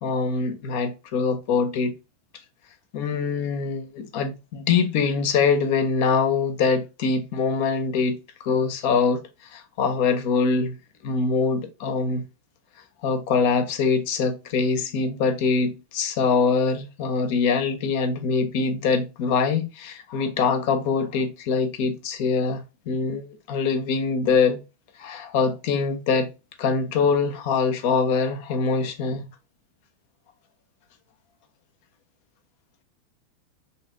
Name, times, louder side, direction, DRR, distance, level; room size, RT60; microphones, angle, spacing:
voice 1, 0.0-1.9 2.9-8.2 8.4-10.7 11.0-12.2 13.0-24.6 25.0-26.3 26.6-29.2, left 5 dB, 60° left, 1.0 m, -23 dB
5.5 x 2.7 x 2.5 m
hypercardioid pair, 110°, 0 cm